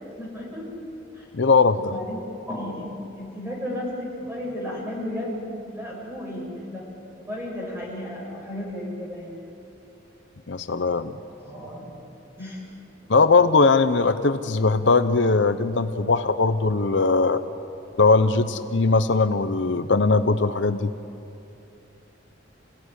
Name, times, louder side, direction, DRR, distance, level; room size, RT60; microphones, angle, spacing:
voice 1, 0.2-0.7 1.2-1.3 1.8-2.2 2.5-6.9 7.2-9.4 11.4-11.9 12.4-12.6 18.4-18.5, left 1 dB, 15° right, -3 dB, 7.0 m, -33 dB
voice 2, 1.3-1.9 10.5-11.1 13.1-17.4 18.0-20.9, left 3 dB, 65° left, 10 dB, 0.8 m, -20 dB
27.5 x 17.0 x 10.0 m, 2.8 s
head